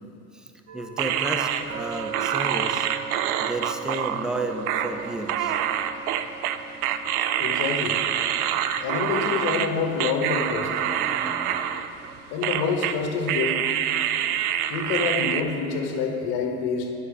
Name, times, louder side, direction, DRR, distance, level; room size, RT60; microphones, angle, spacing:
voice 1, 0.7-2.9 3.4-5.6 8.3-8.6 10.6-11.6, right 1 dB, ahead, 5 dB, 0.5 m, -33 dB
sound 1, 0.7-14.5, right 6 dB, 35° right, 1.0 m, -42 dB
sound 2, 1.0-9.7 10.0-12.1 12.4-13.0 13.3-15.4, right 10 dB, 85° right, 0.5 m, -26 dB
voice 2, 7.4-8.0 8.8-10.7 12.3-13.6 14.7-16.9, left 5 dB, 60° left, 2 dB, 1.3 m, -27 dB
9.5 x 5.7 x 4.9 m, 2.7 s
hypercardioid pair, 75°, 43 cm